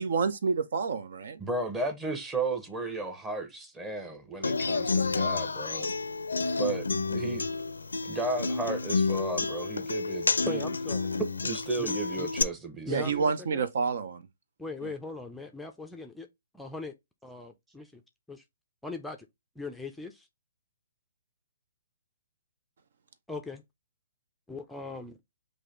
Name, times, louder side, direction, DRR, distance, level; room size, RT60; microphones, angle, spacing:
voice 1, 0.0-1.4 12.9-14.2, right 5 dB, 65° right, 0.6 m, -28 dB
voice 2, 1.4-5.9 6.6-7.5 8.0-10.6 11.4-13.2, right 2 dB, 15° right, 1.0 m, -34 dB
Human voice / Acoustic guitar, 4.4-12.4, left 3 dB, 85° left, 0.4 m, -30 dB
voice 3, 10.5-11.0 11.8-12.3 12.9-13.6 14.6-16.3 16.5-16.9 17.2-18.0 18.3-18.4 18.8-19.3 19.6-20.3 23.3-23.6 24.5-25.2, left 3 dB, 5° left, 0.5 m, -39 dB
4.8 x 2.6 x 3.8 m
hypercardioid pair, 135°, 0 cm